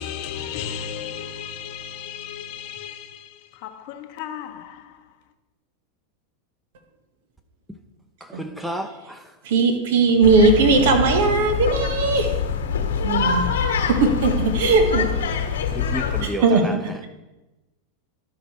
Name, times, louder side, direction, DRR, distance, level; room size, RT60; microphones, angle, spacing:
voice 1, 0.0-5.0, left 8 dB, 55° left, 0.8 m, -34 dB
voice 2, 8.4-9.2 15.7-16.8, equal, 5° right, 0.8 m, -30 dB
voice 3, 9.4-12.3 13.0-13.5 14.0-15.1 16.2-16.6, right 4 dB, 70° right, 1.3 m, -18 dB
sound 1, 10.2-16.2, left 6 dB, 80° left, 1.3 m, -24 dB
11.5 x 5.1 x 4.2 m
hypercardioid pair, 105°, 0 cm